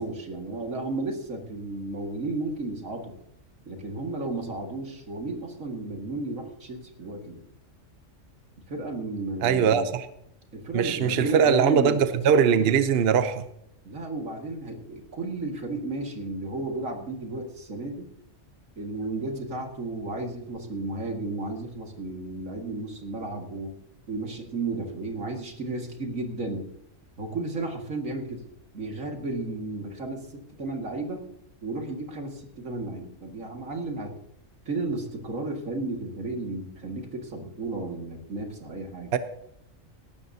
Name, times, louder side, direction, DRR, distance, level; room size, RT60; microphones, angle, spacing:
voice 1, 0.0-3.1 3.7-7.4 8.7-9.9 10.5-12.0 13.8-18.1 18.8-23.8 24.1-26.7 27.2-28.4 28.7-30.3 30.6-31.2 31.6-34.2 34.7-39.1, right 2 dB, 90° right, 3 dB, 2.4 m, -33 dB
voice 2, 9.4-10.0 10.7-13.4 39.1-39.2, right 7 dB, 55° right, 11 dB, 0.9 m, -21 dB
17.0 x 12.5 x 2.8 m, 0.76 s
omnidirectional pair, 1.3 m